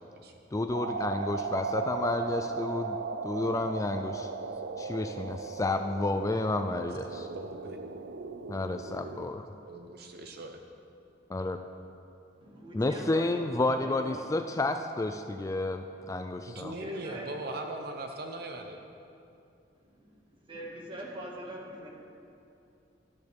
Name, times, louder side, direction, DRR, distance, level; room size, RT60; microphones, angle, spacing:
voice 1, 0.5-3.0 3.2-4.3 4.8-7.3 8.5-9.5 11.3-11.6 12.7-15.8 16.1-16.7, left 2 dB, 20° left, 7 dB, 0.3 m, -30 dB
sound 1, 0.7-9.3, right 4 dB, 85° right, 0.5 m, -37 dB
voice 2, 7.0-7.8 9.7-10.6 16.5-18.8, right 2 dB, 60° right, 4 dB, 0.8 m, -40 dB
voice 3, 12.4-14.6 16.8-17.3 19.8-21.9, right 1 dB, 30° right, -2 dB, 1.9 m, -44 dB
14.5 x 12.5 x 3.5 m, 2.6 s
head